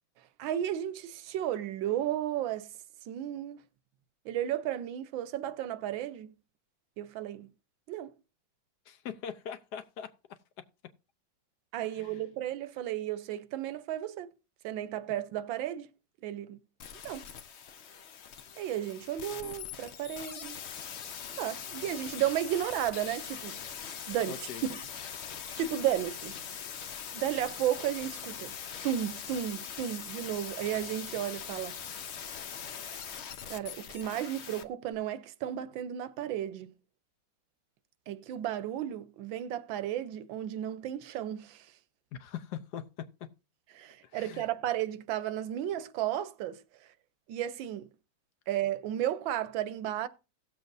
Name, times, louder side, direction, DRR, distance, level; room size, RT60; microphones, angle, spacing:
voice 1, 0.4-2.7 3.1-3.6 4.2-6.3 7.0-7.5 7.9-8.1 11.7-14.3 14.6-15.9 16.2-16.6 17.0-17.3 18.6-20.6 21.4-23.6 24.1-24.8 25.6-26.4 27.1-28.5 28.8-31.7 33.5-36.7 38.1-41.7 43.7-46.6 47.3-47.9 48.5-50.1, right 11 dB, 85° right, 1.4 m, -33 dB
voice 2, 8.9-10.1 11.9-12.2 24.3-24.6 31.1-31.2 42.1-43.1 44.0-44.5, left 8 dB, 70° left, 1.1 m, -41 dB
sound 1, 16.8-34.6 34.9-35.0, left 8 dB, 85° left, 0.5 m, -42 dB
16.5 x 7.2 x 2.6 m
omnidirectional pair, 2.1 m